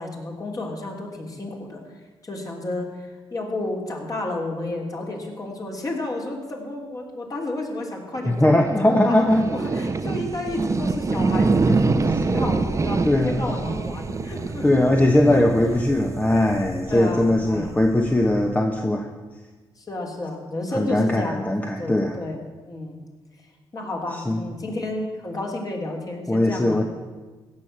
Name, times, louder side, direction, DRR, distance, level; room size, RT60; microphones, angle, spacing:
voice 1, 0.0-2.0 2.2-9.3 9.5-14.8 15.3-15.4 16.9-17.7 19.8-22.4 22.7-23.0 23.7-26.8, left 2 dB, 35° left, 0 dB, 3.4 m, -31 dB
sound 1, 8.1-18.6, right 3 dB, 30° right, 0.9 m, -26 dB
voice 2, 8.3-9.4 13.0-13.5 14.6-19.1 20.7-22.2 24.3-24.4 26.3-26.8, left 1 dB, 15° left, 3 dB, 1.2 m, -20 dB
16.0 x 6.4 x 8.8 m, 1.3 s
cardioid pair, 85°, 10 cm